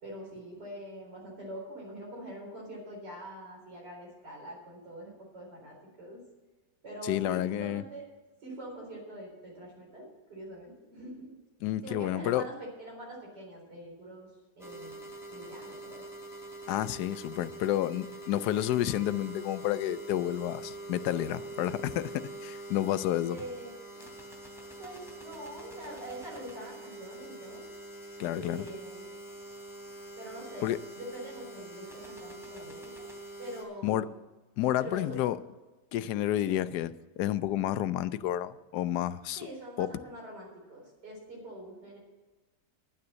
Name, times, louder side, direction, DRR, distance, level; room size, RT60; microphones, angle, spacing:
voice 1, 0.0-6.2 6.8-8.0 8.4-11.4 11.8-14.3 14.6-16.1 23.3-24.1 24.8-27.6 28.3-29.0 30.2-33.1 33.4-34.1 34.8-35.3 36.4-36.5 39.4-42.0, right 1 dB, 80° right, -3 dB, 4.7 m, -44 dB
voice 2, 7.0-7.8 11.6-12.5 16.7-23.4 28.2-28.6 30.6-30.8 33.8-34.1 34.6-35.4 35.9-39.5 39.8-39.9, left 13 dB, 80° left, 15 dB, 1.1 m, -30 dB
sound 1, 14.6-33.6, right 2 dB, ahead, 3.0 m, -45 dB
10.5 x 9.5 x 6.3 m, 1.2 s
omnidirectional pair, 1.8 m